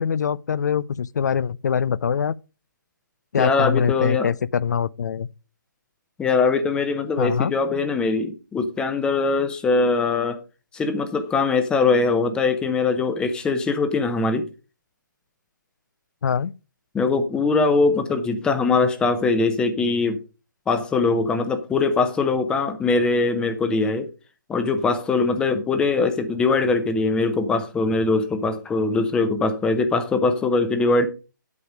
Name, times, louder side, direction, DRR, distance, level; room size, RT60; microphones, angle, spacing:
voice 1, 0.0-2.4 3.3-5.3 7.2-7.5 16.2-16.5, left 7 dB, 55° left, 0.4 m, -23 dB
voice 2, 3.4-4.3 6.2-10.4 10.7-14.4 16.9-20.2 20.7-24.1 24.5-31.1, left 3 dB, 10° left, 0.8 m, -22 dB
8.3 x 7.0 x 4.9 m
figure-of-eight pair, 145°, 11 cm